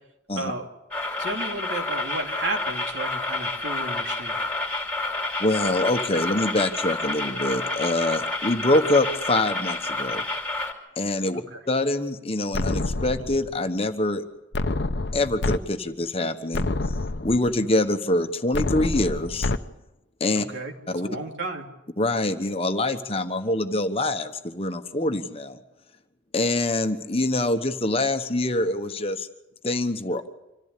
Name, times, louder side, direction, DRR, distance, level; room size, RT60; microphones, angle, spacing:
voice 1, 0.3-0.7 1.2-4.4 11.3-11.6 20.5-21.7, right 2 dB, 80° right, 1 dB, 3.0 m, -33 dB
sound 1, 0.9-10.7, left 2 dB, 10° left, 2.9 m, -29 dB
voice 2, 5.4-10.2 11.0-11.4 11.7-14.2 15.1-16.7 17.2-19.5 20.2-20.4 20.9-21.1 22.0-25.6 26.3-29.3 29.6-30.3, left 2 dB, 30° left, 7 dB, 1.2 m, -25 dB
sound 2, 12.5-13.6 14.5-15.6 16.0-16.1 16.5-17.6 18.5-19.6, left 2 dB, 65° left, 0.8 m, -27 dB
26.0 x 14.5 x 8.4 m, 0.96 s
head